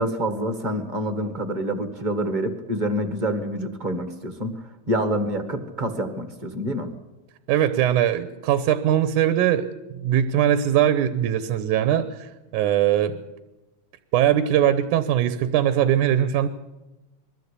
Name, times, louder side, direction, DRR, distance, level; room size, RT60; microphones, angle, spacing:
voice 1, 0.0-6.9, right 1 dB, 30° right, 8 dB, 0.8 m, -27 dB
voice 2, 7.5-9.7 10.0-13.2 14.1-16.5, right 10 dB, 90° right, 11 dB, 2.4 m, -21 dB
22.0 x 15.5 x 8.3 m, 1.0 s
omnidirectional pair, 3.5 m